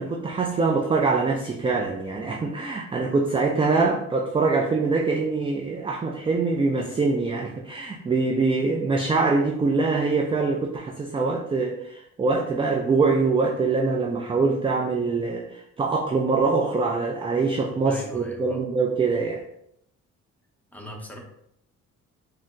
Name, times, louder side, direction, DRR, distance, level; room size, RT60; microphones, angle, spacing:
voice 1, 0.0-19.4, right 4 dB, 20° right, 0 dB, 0.3 m, -24 dB
voice 2, 17.8-18.6 20.7-21.2, left 1 dB, 5° left, 0 dB, 0.7 m, -39 dB
4.0 x 2.0 x 2.5 m, 0.75 s
cardioid pair, 90°, 30 cm